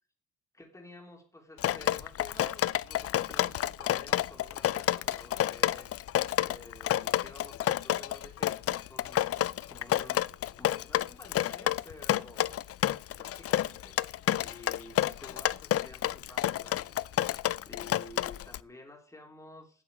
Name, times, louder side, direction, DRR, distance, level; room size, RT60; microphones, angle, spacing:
voice 1, 0.5-5.9 6.5-9.2 9.5-10.3 10.6-12.5 13.2-14.0 14.4-17.1 17.6-19.8, left 2 dB, 10° left, 2 dB, 3.3 m, -51 dB
Drip, 1.6-18.6, left 12 dB, 50° left, 0.5 m, -29 dB
9.0 x 7.5 x 8.2 m, 0.42 s
cardioid pair, 90°, 30 cm